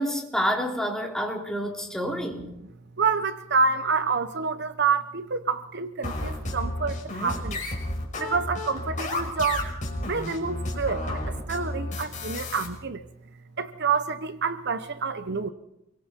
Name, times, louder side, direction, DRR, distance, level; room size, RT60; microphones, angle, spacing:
voice 1, 0.0-2.5, equal, 5° left, 0 dB, 3.5 m, -28 dB
voice 2, 3.0-7.6 8.2-9.7 10.0-13.0 13.6-15.5, right 5 dB, 55° right, 11 dB, 1.0 m, -27 dB
sound 1, 6.0-12.7, left 2 dB, 35° left, 6.0 m, -32 dB
28.5 x 23.5 x 4.5 m, 0.83 s
head